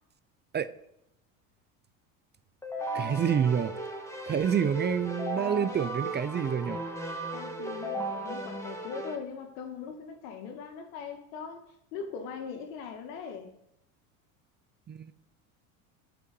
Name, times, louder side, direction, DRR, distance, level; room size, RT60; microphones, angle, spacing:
Keyboard (musical), 2.6-9.2, right 1 dB, 5° left, 2.1 m, -36 dB
voice 1, 2.9-3.7 4.3-6.8 14.9-15.1, right 8 dB, 25° right, 0.6 m, -28 dB
voice 2, 7.3-11.6 11.9-13.5, left 6 dB, 80° left, 2.4 m, -40 dB
11.0 x 5.9 x 7.0 m
supercardioid pair, 100°, 41 cm